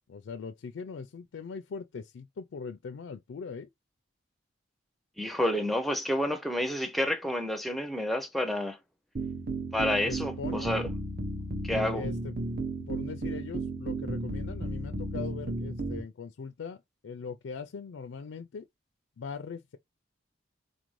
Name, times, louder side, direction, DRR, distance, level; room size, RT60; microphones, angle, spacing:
voice 1, 0.1-3.7 10.1-10.7 11.9-12.3 12.9-18.7 19.2-19.8, left 5 dB, 75° left, 0.4 m, -40 dB
voice 2, 5.2-8.8 9.7-10.9 11.6-12.0, left 1 dB, ahead, 0.5 m, -29 dB
sound 1, 9.2-16.0, right 2 dB, 50° right, 0.8 m, -34 dB
3.9 x 2.5 x 3.1 m
head